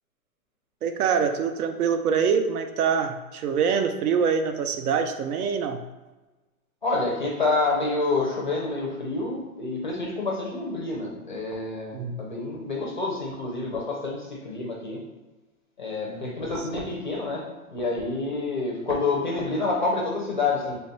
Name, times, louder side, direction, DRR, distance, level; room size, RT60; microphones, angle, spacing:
voice 1, 0.8-5.8 11.9-12.2 16.1-16.4, right 6 dB, 75° right, 7 dB, 0.6 m, -25 dB
voice 2, 6.8-15.0 15.8-20.8, left 3 dB, 35° left, -2 dB, 0.4 m, -28 dB
3.4 x 2.3 x 3.9 m, 1.2 s
hypercardioid pair, 175°, 45 cm